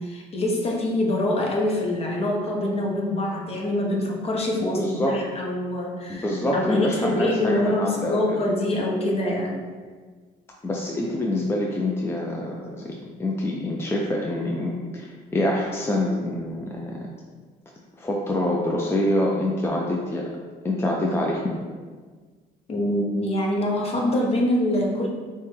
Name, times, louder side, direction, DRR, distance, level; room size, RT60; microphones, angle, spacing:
voice 1, 0.0-9.6 22.7-25.1, left 1 dB, 35° left, -1 dB, 0.9 m, -25 dB
voice 2, 4.6-5.2 6.1-8.4 10.6-12.9 13.2-17.0 18.0-20.3 20.6-21.4, left 1 dB, 15° left, -2 dB, 0.5 m, -26 dB
6.3 x 2.3 x 3.2 m, 1.5 s
cardioid pair, 110°, 17 cm